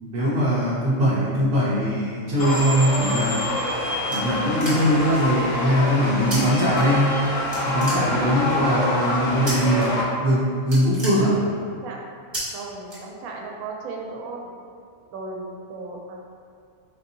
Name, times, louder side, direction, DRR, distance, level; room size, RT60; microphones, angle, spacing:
voice 1, 0.0-3.4 4.1-7.2 7.7-11.5, equal, 55° right, -9 dB, 0.8 m, -21 dB
sound 1, 2.4-10.0, left 1 dB, 70° left, 0.9 m, -26 dB
sound 2, 4.1-5.1 6.3-6.4 6.7-7.2 7.5-8.5 9.5-9.9 10.2-10.3 10.6-11.8 12.3-12.4 12.9-13.5, right 1 dB, 20° right, 1.2 m, -33 dB
voice 2, 11.6-12.0 12.5-14.5 15.1-16.2, right 3 dB, 80° right, -1 dB, 1.0 m, -36 dB
4.7 x 2.6 x 2.6 m, 2.3 s
omnidirectional pair, 1.4 m